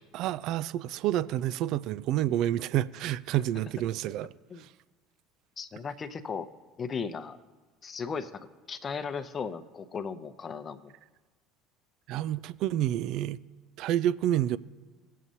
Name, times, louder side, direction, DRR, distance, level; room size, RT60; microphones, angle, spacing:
voice 1, 0.1-4.3 4.6-4.7 12.1-13.4 13.8-14.6, right 12 dB, 60° right, 0.3 m, -29 dB
voice 2, 5.6-6.5 6.8-7.4 7.8-10.9, left 5 dB, 35° left, 0.7 m, -36 dB
18.5 x 7.4 x 2.7 m
hypercardioid pair, 70°, 0 cm